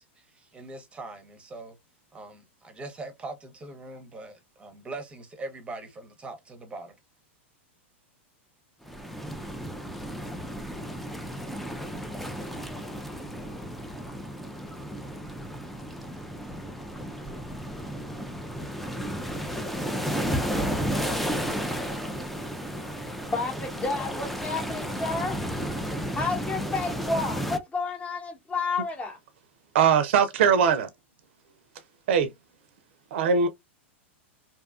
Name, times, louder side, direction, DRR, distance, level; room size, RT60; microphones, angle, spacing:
voice 1, 0.2-1.8 2.1-7.0, right 2 dB, 15° right, 0.7 m, -41 dB
sound 1, 8.9-27.6, equal, ahead, 0.4 m, -33 dB
voice 2, 23.3-25.4 26.2-29.2, left 3 dB, 20° left, 0.9 m, -30 dB
voice 3, 29.7-30.9 32.1-32.3 33.1-33.5, right 6 dB, 65° right, 0.5 m, -21 dB
2.6 x 2.3 x 2.3 m
hypercardioid pair, 120°, 7 cm